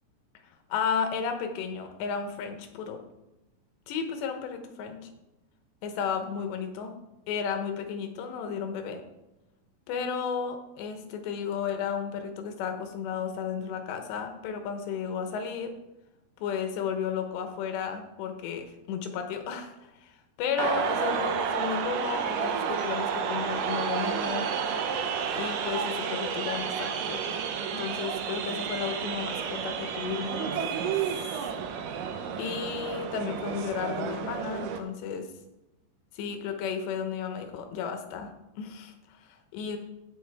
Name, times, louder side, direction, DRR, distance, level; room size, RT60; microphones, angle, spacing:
voice 1, 0.7-3.0 3.9-5.1 5.8-6.9 7.3-9.0 9.9-15.7 16.4-24.5 25.3-27.4 27.7-30.6 31.0-31.5 32.4-35.3 36.1-38.3 38.6-39.8, left 6 dB, 90° left, 6 dB, 3.2 m, -33 dB
sound 1, 20.6-34.8, right 7 dB, 85° right, 1.8 m, -31 dB
16.5 x 5.5 x 3.5 m, 0.96 s
omnidirectional pair, 4.9 m